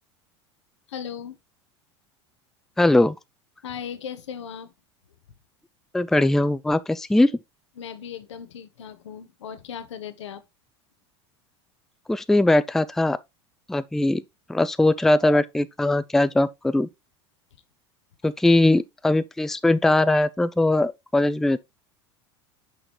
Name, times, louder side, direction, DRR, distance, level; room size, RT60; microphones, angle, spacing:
voice 1, 0.9-1.4 3.6-4.7 7.8-10.4 18.2-18.3, left 8 dB, 85° left, 1.0 m, -37 dB
voice 2, 2.8-3.1 5.9-7.3 12.1-13.2 13.7-14.2 14.5-16.9 18.2-21.6, left 2 dB, 5° left, 0.4 m, -20 dB
6.2 x 5.1 x 3.0 m
hypercardioid pair, 90°, 15 cm